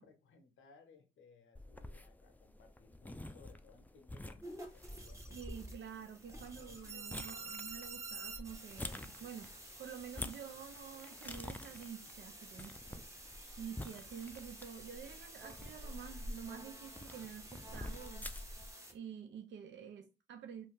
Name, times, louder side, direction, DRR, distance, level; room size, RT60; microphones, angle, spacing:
voice 1, 0.0-5.5 6.3-7.6, left 5 dB, 85° left, 0.7 m, -63 dB
sound 1, 1.5-18.7, left 1 dB, 10° left, 0.4 m, -49 dB
sound 2, 4.4-18.9, right 2 dB, 15° right, 0.9 m, -50 dB
voice 2, 5.3-9.5 9.8-13.0 13.6-18.3 18.9-20.6, right 8 dB, 70° right, 0.5 m, -49 dB
2.5 x 2.3 x 3.6 m
supercardioid pair, 40°, 20 cm